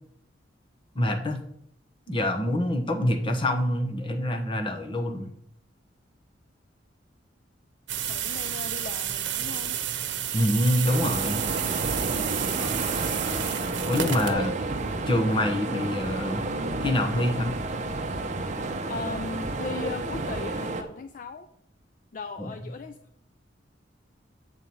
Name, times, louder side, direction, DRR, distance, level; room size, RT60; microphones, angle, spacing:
voice 1, 0.9-1.4 2.1-5.3 10.3-11.4 13.9-14.5 15.1-16.4 16.8-17.5 22.4-22.5, left 1 dB, 30° left, 4 dB, 1.1 m, -26 dB
sound 1, 7.9-14.3, right 10 dB, 80° right, 0.9 m, -31 dB
voice 2, 8.1-9.8 14.2-14.5 18.9-21.5 22.1-23.0, left 4 dB, 50° left, 9 dB, 0.4 m, -37 dB
sound 2, 10.8-20.8, right 2 dB, 40° right, 0.8 m, -31 dB
8.0 x 4.5 x 7.0 m, 0.71 s
head